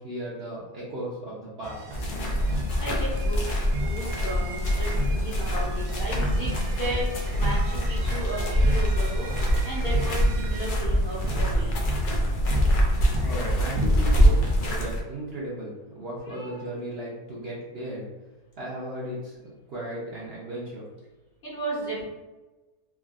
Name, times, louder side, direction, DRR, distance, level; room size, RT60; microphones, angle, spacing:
voice 1, 0.0-1.8 13.2-18.1 18.6-19.4 19.7-20.9, right 1 dB, 55° right, -6 dB, 0.8 m, -35 dB
sound 1, 1.6-14.7, equal, 80° right, 1.1 m, -35 dB
sound 2, 1.9-15.0, equal, 80° left, 0.4 m, -24 dB
voice 2, 2.8-6.5 6.8-7.1 7.3-9.3 9.6-11.8 16.3-16.6 21.4-22.0, right 1 dB, 50° left, -6 dB, 0.9 m, -34 dB
3.4 x 2.3 x 2.3 m, 1.2 s
omnidirectional pair, 1.5 m